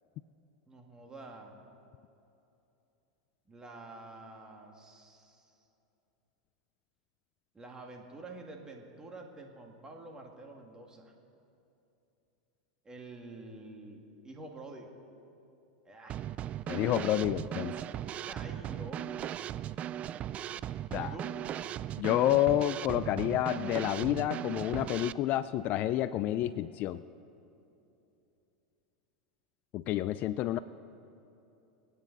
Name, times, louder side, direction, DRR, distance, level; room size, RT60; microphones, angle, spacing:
voice 1, 0.7-1.6 3.5-5.5 7.5-11.1 12.8-15.0 15.9-16.2 16.7-17.0 18.3-19.3 21.0-21.3, right 2 dB, 20° right, 1 dB, 2.2 m, -48 dB
Drum kit / Snare drum, 16.1-25.1, right 11 dB, 35° right, 0.3 m, -38 dB
voice 2, 16.7-17.7 20.9-21.1 22.0-27.0 29.7-30.6, left 13 dB, 45° left, 15 dB, 0.4 m, -29 dB
26.0 x 9.3 x 4.1 m, 2.8 s
hypercardioid pair, 105°, 4 cm